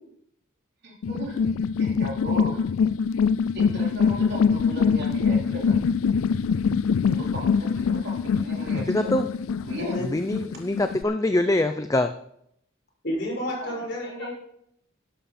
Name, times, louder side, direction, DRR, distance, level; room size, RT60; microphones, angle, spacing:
voice 1, 0.8-1.3 1.8-2.6 3.5-5.8 7.0-9.1 9.6-10.0 13.6-13.8, right 1 dB, 55° right, -3 dB, 4.2 m, -36 dB
sound 1, 1.0-11.0, left 6 dB, 90° left, 0.4 m, -24 dB
voice 2, 8.7-9.3 10.0-12.1, left 1 dB, 15° left, 8 dB, 0.4 m, -24 dB
voice 3, 9.8-10.1 13.0-14.3, left 1 dB, 55° left, -2 dB, 6.1 m, -30 dB
12.5 x 11.5 x 4.3 m, 0.72 s
head